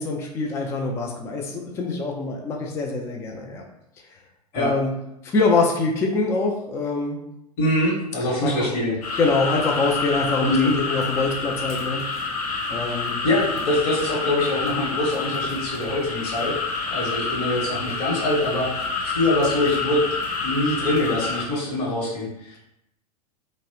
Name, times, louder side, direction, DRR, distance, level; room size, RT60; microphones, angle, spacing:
voice 1, 0.0-3.6 4.5-4.9 5.2-7.2 8.4-8.5 9.2-12.0 12.7-13.2, left 3 dB, 15° left, 1 dB, 0.3 m, -24 dB
voice 2, 7.6-8.9 10.4-10.7 13.2-16.6 16.9-20.0 20.4-22.5, left 1 dB, 45° left, -5 dB, 1.0 m, -24 dB
sound 1, 9.0-21.4, left 4 dB, 65° left, 0.6 m, -28 dB
2.9 x 2.0 x 2.8 m, 0.84 s
figure-of-eight pair, 90°, 20 cm